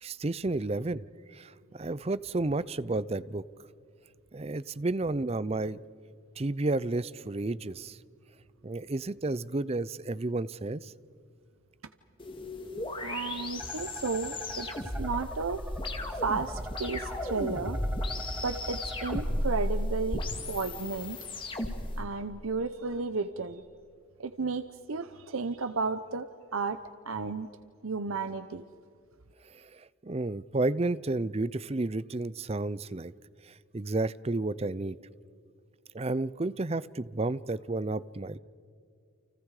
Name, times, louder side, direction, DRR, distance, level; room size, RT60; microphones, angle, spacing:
voice 1, 0.0-1.0 1.3-3.4 4.3-5.8 6.4-8.0 8.6-10.9 29.5-33.1 33.4-35.0 35.9-38.4, right 2 dB, 30° right, 18 dB, 0.5 m, -31 dB
sound 1, 12.2-22.0, left 1 dB, 25° left, 2.2 m, -35 dB
voice 2, 13.0-14.7 15.0-15.6 16.1-17.8 18.4-20.2 20.5-21.2 22.0-23.6 24.2-26.8 27.0-27.5 27.8-28.6, right 4 dB, 85° right, 10 dB, 0.8 m, -33 dB
sound 2, 13.6-19.2, equal, 10° right, 1.6 m, -41 dB
30.0 x 29.0 x 4.9 m, 2.4 s
head